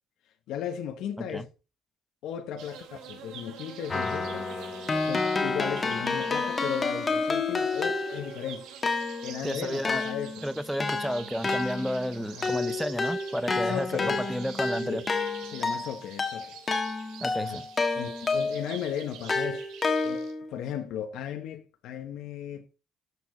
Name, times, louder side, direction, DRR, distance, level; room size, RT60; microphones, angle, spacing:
voice 1, 0.5-1.5 2.2-4.5 5.0-8.7 9.2-10.4 12.2-12.6 13.5-14.2 14.8-15.1 15.5-16.5 17.4-17.6 17.9-19.7 20.0-22.7, left 9 dB, 65° left, 1.1 m, -36 dB
sound 1, 2.6-20.3, right 8 dB, 85° right, 3.0 m, -45 dB
Keyboard (musical), 3.9-8.4 8.8-18.7 19.3-20.5, left 3 dB, 20° left, 1.5 m, -30 dB
voice 2, 9.4-10.0 10.4-15.0 17.2-17.6, equal, ahead, 0.5 m, -32 dB
13.0 x 6.9 x 4.0 m
cardioid pair, 175°, 0 cm